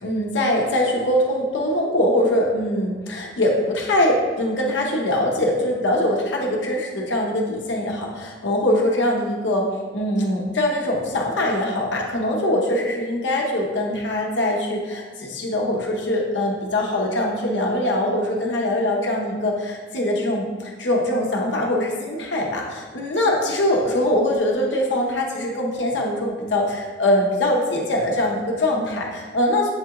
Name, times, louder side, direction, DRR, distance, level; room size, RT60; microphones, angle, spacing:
voice 1, 0.0-9.7 9.9-29.7, left 1 dB, 80° left, -1 dB, 0.8 m, -22 dB
7.3 x 2.9 x 2.4 m, 1.4 s
head